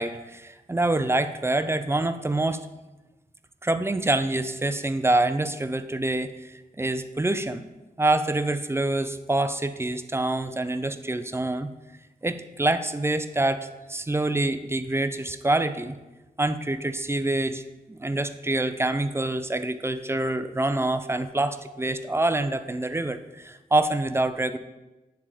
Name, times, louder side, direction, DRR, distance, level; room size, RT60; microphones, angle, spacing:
voice 1, 0.0-2.6 3.6-7.6 8.0-11.7 12.2-16.0 16.4-17.6 17.9-24.6, right 2 dB, 15° right, 10 dB, 0.5 m, -26 dB
9.8 x 3.5 x 4.9 m, 1.1 s
cardioid pair, 55°, 16 cm